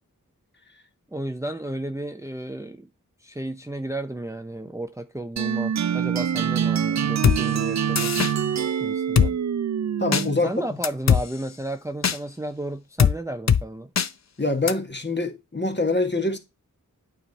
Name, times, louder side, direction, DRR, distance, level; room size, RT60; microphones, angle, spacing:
voice 1, 1.1-2.9 3.2-8.1 8.8-9.4 10.4-13.9, right 1 dB, 10° right, 0.7 m, -33 dB
sound 1, 5.4-10.5, right 8 dB, 55° right, 0.5 m, -25 dB
Drum kit, 7.2-7.4 8.0-8.3 9.2-9.3 10.1-10.2 10.8-11.2 12.0-12.2 13.0-13.1 13.5-13.6 14.0-14.1 14.7-14.8, left 7 dB, 50° left, 0.6 m, -19 dB
voice 2, 10.0-10.6 14.4-16.4, left 2 dB, 30° left, 1.6 m, -25 dB
8.9 x 3.6 x 4.0 m
cardioid pair, 40°, 34 cm